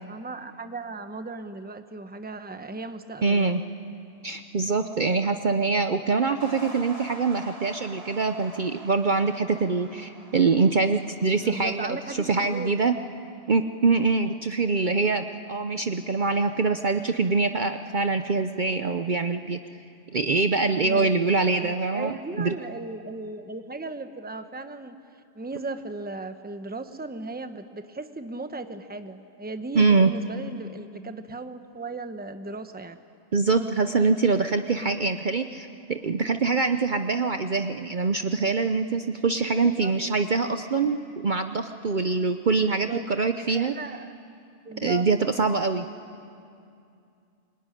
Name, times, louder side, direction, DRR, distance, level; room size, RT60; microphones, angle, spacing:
voice 1, 0.0-3.6 11.4-12.7 20.7-21.1 21.4-24.9 25.3-33.0 39.5-39.9 42.9-43.1 43.5-44.1 44.6-45.1, right 3 dB, 10° right, 8 dB, 0.9 m, -36 dB
voice 2, 3.2-3.6 4.2-12.9 13.5-19.6 20.1-22.5 29.7-30.1 33.3-43.7 44.8-45.9, right 4 dB, 45° right, 7 dB, 0.8 m, -24 dB
sound 1, 6.4-12.9, right 1 dB, 30° right, 2.1 m, -45 dB
25.5 x 23.0 x 10.0 m, 2.5 s
omnidirectional pair, 1.3 m